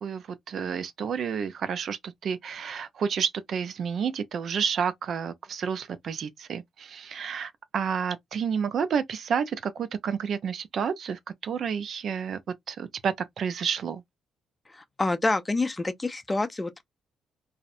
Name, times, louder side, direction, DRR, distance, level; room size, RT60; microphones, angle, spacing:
voice 1, 0.0-12.4 12.7-14.0, right 7 dB, 60° right, 0.3 m, -30 dB
voice 2, 14.7-16.8, left 2 dB, 20° left, 0.4 m, -27 dB
2.5 x 2.0 x 2.4 m
supercardioid pair, 65°, 0 cm